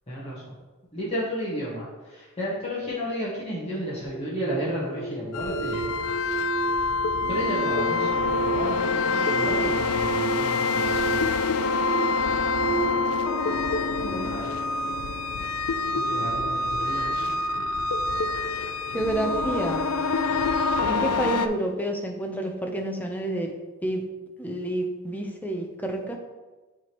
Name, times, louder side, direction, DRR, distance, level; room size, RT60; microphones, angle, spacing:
voice 1, 0.1-0.4 0.9-1.8 2.1-5.9 7.3-11.2 14.2-14.5 15.9-17.2, equal, 30° left, -8 dB, 1.4 m, -32 dB
sound 1, 4.0-15.0, right 5 dB, 80° right, 1.0 m, -33 dB
sound 2, 5.3-21.5, left 3 dB, 80° left, 0.4 m, -26 dB
voice 2, 14.0-14.4 18.9-19.8 20.8-23.5 23.8-24.0 24.4-26.2, right 1 dB, 10° left, 2 dB, 0.7 m, -29 dB
9.3 x 3.5 x 3.0 m, 1.2 s
head